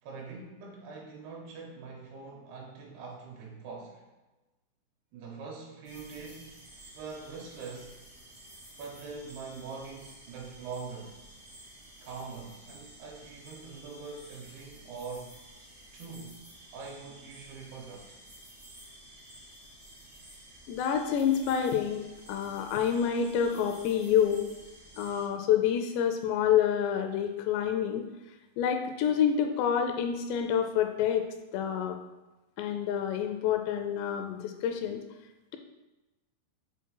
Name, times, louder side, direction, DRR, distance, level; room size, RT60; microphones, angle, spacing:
voice 1, 0.0-4.1 5.1-6.6 6.9-8.1 8.8-11.2 12.0-15.4 15.9-16.4 16.7-18.2 27.6-27.8, right 4 dB, 80° right, 0 dB, 2.5 m, -43 dB
sound 1, 5.8-25.3, right 1 dB, 60° right, 0.4 m, -52 dB
voice 2, 20.7-22.0 22.3-24.4 25.0-28.1 28.6-31.3 31.5-32.0 32.6-35.0, left 8 dB, 85° left, 5 dB, 2.6 m, -27 dB
7.2 x 3.9 x 4.6 m, 1.1 s
omnidirectional pair, 5.2 m